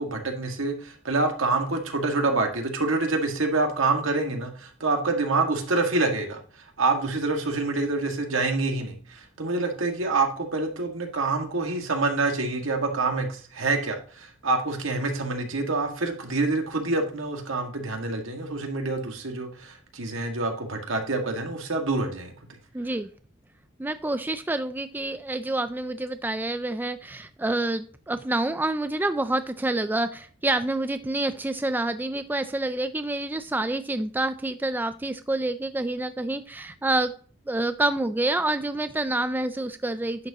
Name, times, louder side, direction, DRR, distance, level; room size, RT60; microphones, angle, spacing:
voice 1, 0.0-6.4 6.8-22.3, right 3 dB, 75° right, 3 dB, 1.8 m, -26 dB
voice 2, 22.7-23.1 23.8-37.1 37.5-40.3, right 2 dB, 10° right, 10 dB, 0.4 m, -27 dB
10.5 x 7.2 x 2.9 m, 0.43 s
head